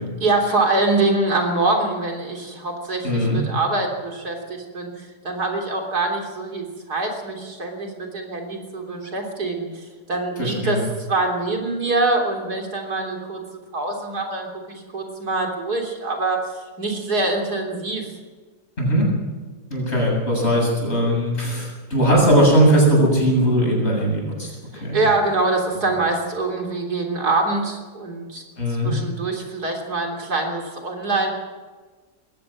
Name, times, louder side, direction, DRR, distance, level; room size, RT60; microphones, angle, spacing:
voice 1, 0.2-13.4 13.7-18.1 24.7-28.4 28.8-31.3, right 2 dB, 70° right, 2 dB, 4.0 m, -24 dB
voice 2, 3.0-3.4 10.4-10.8 18.8-19.1 19.7-24.5 24.8-25.0 25.7-25.8 28.6-28.9, right 1 dB, 40° left, -2 dB, 8.2 m, -19 dB
21.5 x 17.0 x 7.5 m, 1.4 s
omnidirectional pair, 1.7 m